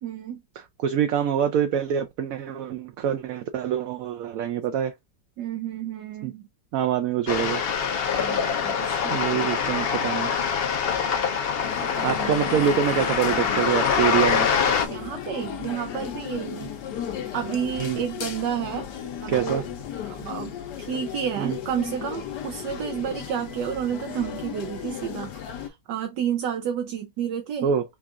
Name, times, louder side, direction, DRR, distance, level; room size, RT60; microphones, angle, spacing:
voice 1, 0.0-0.4 5.4-6.5 8.1-9.5 11.8-13.6 14.8-16.8 17.3-18.9 19.2-19.7 20.1-27.7, right 8 dB, 85° right, 1.3 m, -31 dB
voice 2, 0.8-4.9 6.2-6.3 6.7-7.6 9.1-10.3 12.0-14.5 17.8-18.0 19.3-19.6 21.4-21.6 27.6-27.8, right 9 dB, 70° right, 0.9 m, -25 dB
sound 1, 7.3-14.9, left 6 dB, 60° left, 0.6 m, -24 dB
sound 2, 11.6-25.7, left 9 dB, 80° left, 1.4 m, -35 dB
4.7 x 2.4 x 3.5 m
omnidirectional pair, 1.8 m